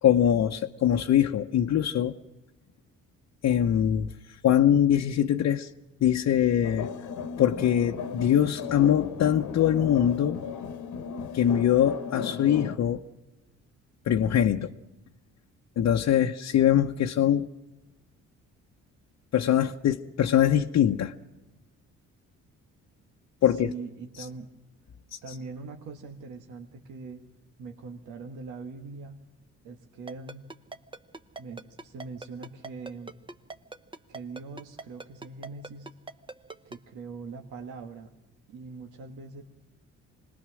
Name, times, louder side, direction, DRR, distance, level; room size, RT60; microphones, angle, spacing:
voice 1, 0.0-2.2 3.4-4.1 4.4-5.7 6.0-6.9 7.4-10.4 11.3-13.0 14.1-14.7 15.8-17.5 19.3-21.1 23.4-23.7 25.1-25.3, left 10 dB, 60° left, 0.9 m, -23 dB
sound 1, 6.6-12.8, left 6 dB, 75° left, 1.3 m, -35 dB
voice 2, 23.4-24.5 25.2-27.2 27.6-29.2 29.6-30.5 31.4-33.1 34.1-35.9 36.6-38.1 38.5-39.4, right 4 dB, 85° right, 1.7 m, -42 dB
Ringtone, 30.1-36.8, right 3 dB, 15° right, 1.0 m, -40 dB
26.0 x 20.0 x 6.3 m
cardioid pair, 90°, 30 cm